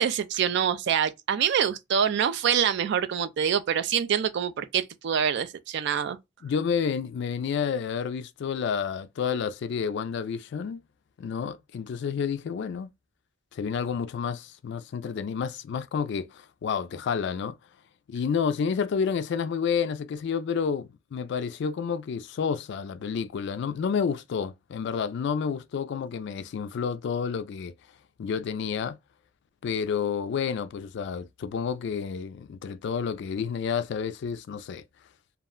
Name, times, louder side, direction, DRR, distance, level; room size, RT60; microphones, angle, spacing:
voice 1, 0.0-6.2, right 8 dB, 60° right, 0.3 m, -25 dB
voice 2, 6.4-10.8 11.2-12.9 13.5-17.6 18.1-27.7 28.2-29.0 29.6-34.8, left 6 dB, 60° left, 0.3 m, -30 dB
2.4 x 2.1 x 3.6 m
head